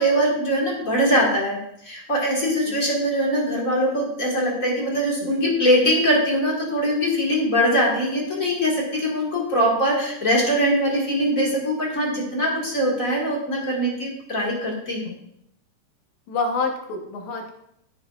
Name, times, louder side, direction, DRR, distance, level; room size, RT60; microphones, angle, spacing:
voice 1, 0.0-1.6 1.8-15.1, equal, 30° left, -3 dB, 1.8 m, -22 dB
voice 2, 16.3-17.5, left 4 dB, 75° left, 3 dB, 2.4 m, -27 dB
15.0 x 7.1 x 2.4 m, 0.76 s
omnidirectional pair, 3.4 m